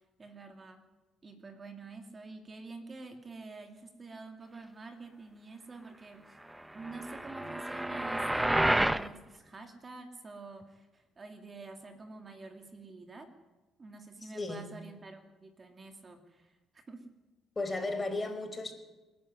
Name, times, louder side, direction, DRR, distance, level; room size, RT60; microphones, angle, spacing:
voice 1, 0.2-0.8 1.2-6.4 6.7-13.3 13.8-16.6 16.9-17.1, right 3 dB, 35° right, 5 dB, 2.7 m, -47 dB
sound 1, 6.8-9.1, right 1 dB, 10° right, 0.9 m, -29 dB
voice 2, 14.2-14.6 17.5-18.7, left 2 dB, 25° left, 7 dB, 4.7 m, -35 dB
26.0 x 11.0 x 9.7 m, 1.1 s
supercardioid pair, 80°, 0 cm